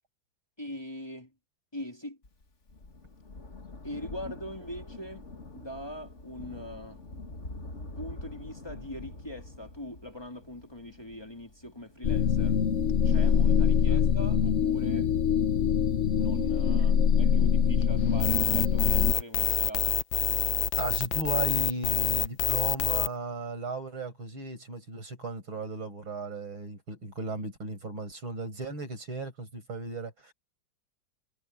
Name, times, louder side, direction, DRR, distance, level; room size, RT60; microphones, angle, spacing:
voice 1, 0.6-1.3 1.7-2.2 3.8-7.0 8.0-12.6 13.0-15.1 16.1-20.0, left 1 dB, 10° left, 3.4 m, -42 dB
Thunder, 2.2-15.1 16.0-16.1, left 2 dB, 35° left, 2.5 m, -46 dB
sound 1, 12.0-19.1, left 7 dB, 55° left, 0.8 m, -24 dB
sound 2, 18.2-23.1, left 13 dB, 85° left, 1.6 m, -27 dB
voice 2, 20.8-30.3, right 3 dB, 80° right, 7.1 m, -36 dB
omnidirectional pair, 2.2 m